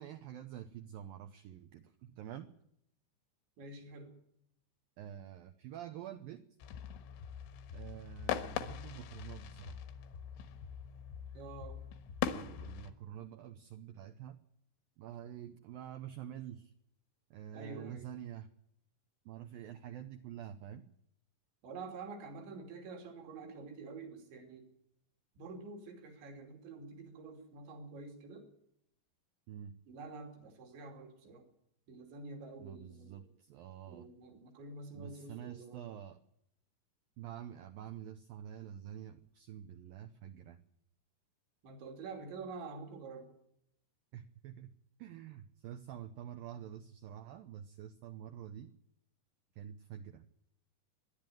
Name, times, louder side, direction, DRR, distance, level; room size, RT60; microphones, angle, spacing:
voice 1, 0.0-2.5 5.0-6.4 7.7-9.8 12.3-14.4 15.0-16.7 17.3-18.5 19.3-20.9 29.5-29.7 32.6-34.1 34.9-36.2 37.2-40.6 44.1-44.7 45.0-48.7 49.6-50.2, right 10 dB, 90° right, 8 dB, 2.0 m, -47 dB
voice 2, 3.6-4.2 11.3-11.8 17.5-18.1 21.6-24.7 25.4-28.5 29.9-31.4 31.9-33.2 33.9-35.9 41.6-43.3, right 3 dB, 70° right, 3 dB, 5.1 m, -48 dB
sound 1, 6.6-12.9, left 9 dB, 90° left, 3.8 m, -41 dB
26.5 x 11.0 x 9.2 m, 0.76 s
omnidirectional pair, 5.3 m